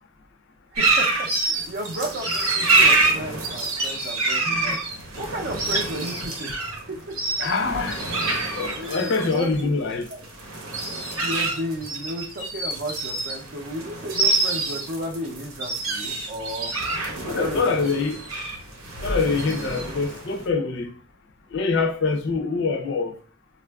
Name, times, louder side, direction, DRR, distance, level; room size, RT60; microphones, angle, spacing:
voice 1, 0.7-4.8 5.2-6.5 6.9-7.2 8.8-9.7 10.1-10.2 11.2-16.7 17.2-17.7, right 1 dB, 50° right, 0.5 m, -33 dB
sound 1, 0.8-20.4, right 3 dB, 85° right, 0.8 m, -26 dB
voice 2, 4.4-4.8 7.4-8.0 8.5-10.1 17.3-18.2 19.0-20.9 21.5-23.1, left 4 dB, 55° left, 0.5 m, -24 dB
4.2 x 2.4 x 2.2 m
head